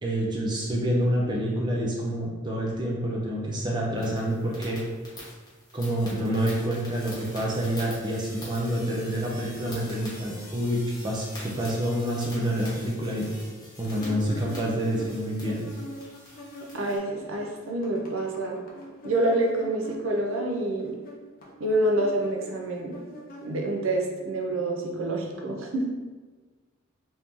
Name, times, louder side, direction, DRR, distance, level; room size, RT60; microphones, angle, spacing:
voice 1, 0.0-4.8 5.7-13.3 13.8-15.7, right 1 dB, 20° right, -3 dB, 0.6 m, -27 dB
sound 1, 4.0-17.0, left 1 dB, 20° left, 1.1 m, -45 dB
sound 2, 13.8-17.0 17.2-23.9, left 1 dB, 45° left, 0.6 m, -44 dB
voice 2, 16.7-18.6 19.0-20.9 21.6-22.9 23.4-25.8, right 1 dB, 75° right, 0 dB, 0.5 m, -27 dB
2.9 x 2.7 x 3.5 m, 1.4 s
head